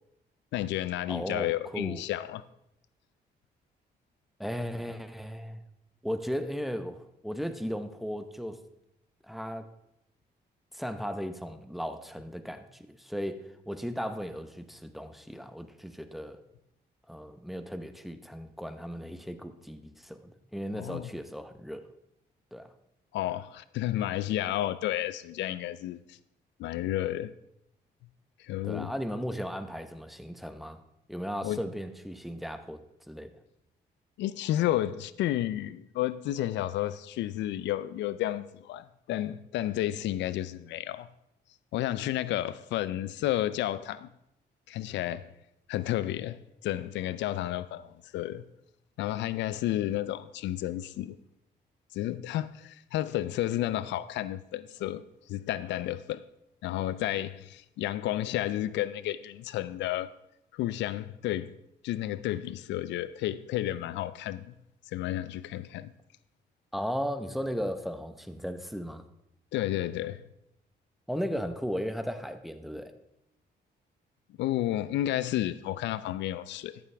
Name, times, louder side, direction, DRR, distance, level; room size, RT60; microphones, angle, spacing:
voice 1, 0.5-2.4 20.7-21.1 23.1-26.2 26.6-27.3 28.4-28.9 31.4-31.6 34.2-41.1 41.7-44.1 44.7-45.3 45.7-48.4 49.0-51.2 51.9-55.0 55.3-56.2 56.6-60.1 60.5-61.5 61.8-64.5 64.9-65.9 69.5-70.2 74.4-76.8, left 13 dB, 85° left, 0.4 m, -31 dB
voice 2, 1.1-2.0 4.4-5.6 6.0-8.6 9.2-9.7 10.7-16.4 17.1-21.9 22.5-22.7 28.6-30.8 31.1-33.3 66.7-69.0 71.1-72.9, equal, ahead, 0.9 m, -36 dB
13.5 x 7.1 x 3.4 m
cardioid pair, 75°, 18 cm